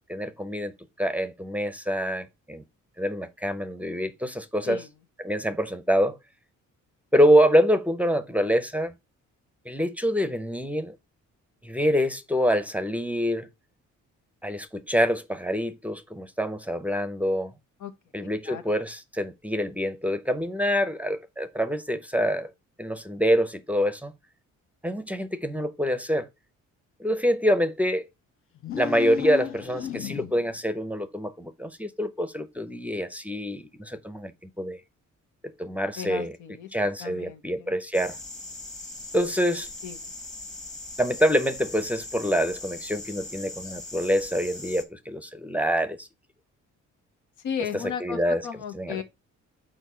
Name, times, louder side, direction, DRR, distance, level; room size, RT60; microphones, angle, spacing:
voice 1, 0.1-0.7 1.0-2.6 3.0-4.8 5.2-6.2 7.1-8.9 9.7-10.9 11.6-13.5 14.4-17.5 18.1-22.5 22.8-24.1 24.8-26.3 27.0-28.1 28.8-34.3 34.6-34.8 35.6-36.3 36.7-38.2 39.1-39.7 41.0-46.1 48.0-48.4 48.7-49.0, equal, 5° right, 0.6 m, -26 dB
voice 2, 18.2-18.7 36.0-36.7 37.0-37.7 39.8-40.1 47.4-49.0, left 8 dB, 80° left, 1.1 m, -35 dB
sound 1, 28.6-30.6, left 9 dB, 45° left, 0.7 m, -34 dB
sound 2, 37.9-44.8, left 2 dB, 25° left, 1.5 m, -40 dB
4.5 x 4.5 x 5.5 m
cardioid pair, 90°, 30 cm